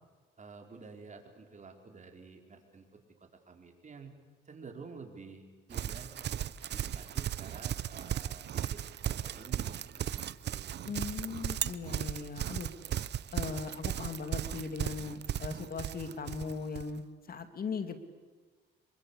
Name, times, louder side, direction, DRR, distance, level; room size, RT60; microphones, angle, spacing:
voice 1, 0.4-4.1 4.5-6.1 6.7-8.8 9.1-10.1 10.4-10.8, right 4 dB, 40° right, 4 dB, 4.7 m, -50 dB
Livestock farm animals working animals, 5.7-16.9, right 11 dB, 60° right, 0.8 m, -36 dB
voice 2, 10.8-12.7 13.3-18.0, left 5 dB, 50° left, 9 dB, 2.5 m, -39 dB
27.0 x 23.0 x 8.5 m, 1.3 s
cardioid pair, 90°, 20 cm